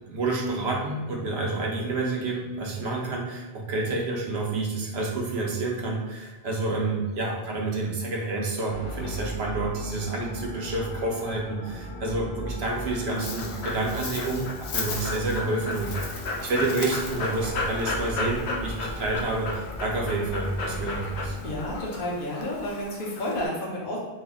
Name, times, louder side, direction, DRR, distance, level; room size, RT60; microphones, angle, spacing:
voice 1, 0.1-21.4, right 2 dB, 85° right, -1 dB, 0.9 m, -29 dB
sound 1, 8.7-21.6, equal, 35° left, 0.7 m, -38 dB
Dog, 12.7-23.5, left 2 dB, 90° left, 0.8 m, -34 dB
voice 2, 21.4-24.0, left 1 dB, 60° left, -4 dB, 0.9 m, -31 dB
3.2 x 2.0 x 3.5 m, 1.1 s
omnidirectional pair, 1.1 m